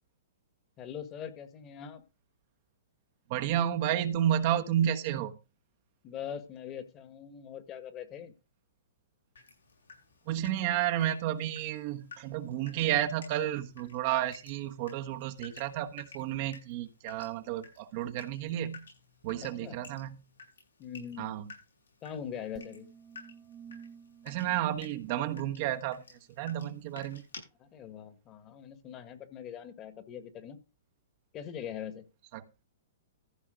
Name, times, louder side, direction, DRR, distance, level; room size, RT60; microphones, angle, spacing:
voice 1, 0.8-2.0 6.0-8.3 19.6-19.8 20.8-21.5 22.0-22.9 27.6-30.6 31.3-32.0, left 8 dB, 30° left, 11 dB, 1.7 m, -42 dB
voice 2, 3.3-5.4 10.3-18.8 19.2-20.2 21.2-21.4 24.2-27.3 32.3-32.4, right 11 dB, 45° right, 7 dB, 1.2 m, -31 dB
Water tap faucet / Drip, 9.4-27.4, left 5 dB, 90° left, 7.2 m, -54 dB
sound 1, 22.6-25.9, right 7 dB, 25° right, 1.0 m, -52 dB
14.5 x 5.7 x 5.1 m, 0.29 s
hypercardioid pair, 130°, 0 cm